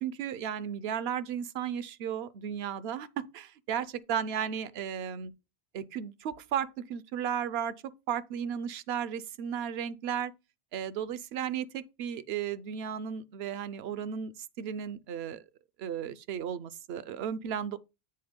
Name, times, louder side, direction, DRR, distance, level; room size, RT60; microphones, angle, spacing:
voice 1, 0.0-5.3 5.7-7.7 8.1-10.3 10.7-14.3 14.6-15.4 15.8-17.8, right 8 dB, 75° right, 0.8 m, -34 dB
7.9 x 3.4 x 5.1 m
omnidirectional pair, 1.1 m